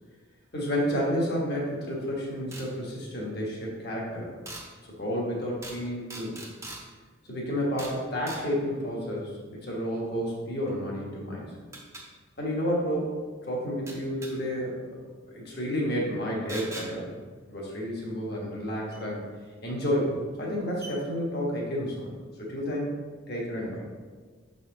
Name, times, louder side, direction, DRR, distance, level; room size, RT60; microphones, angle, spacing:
voice 1, 0.5-4.3 5.0-6.3 7.2-11.5 12.4-13.1 13.5-14.7 15.3-17.1 17.5-19.4 19.6-22.1 22.4-22.9 23.3-23.9, equal, 50° left, -3 dB, 1.4 m, -30 dB
sound 1, 2.5-2.7 4.5-4.7 5.6-5.8 6.1-6.8 7.8-8.0 8.3-8.4 10.7-10.8 11.7-12.0 13.9-14.3 16.5-16.9 18.9-19.0 20.0-20.1 20.5-20.6 20.8-20.9, right 2 dB, 15° right, 0.8 m, -40 dB
6.5 x 4.1 x 3.9 m, 1.5 s
head